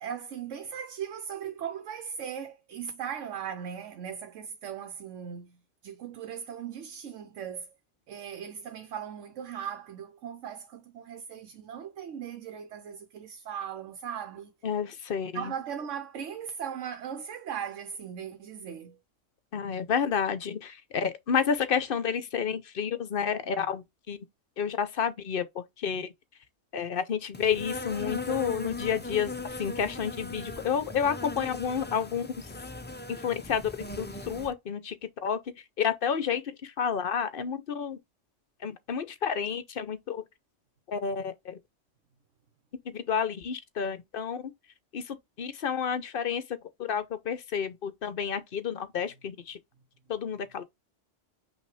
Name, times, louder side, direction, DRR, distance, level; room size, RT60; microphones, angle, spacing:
voice 1, 0.0-7.7 8.1-14.5 15.3-19.0, right 8 dB, 90° right, 1.1 m, -38 dB
voice 2, 14.6-15.5 19.5-24.2 24.6-26.1 26.7-29.3 29.6-32.3 33.1-35.0 35.2-35.4 35.8-38.0 38.6-40.2 40.9-41.6 42.9-44.4 44.9-46.4 46.8-49.6 50.1-50.6, left 7 dB, 55° left, 0.8 m, -30 dB
Insect, 27.3-34.5, left 2 dB, 15° left, 0.3 m, -39 dB
5.6 x 2.6 x 3.2 m
omnidirectional pair, 1.2 m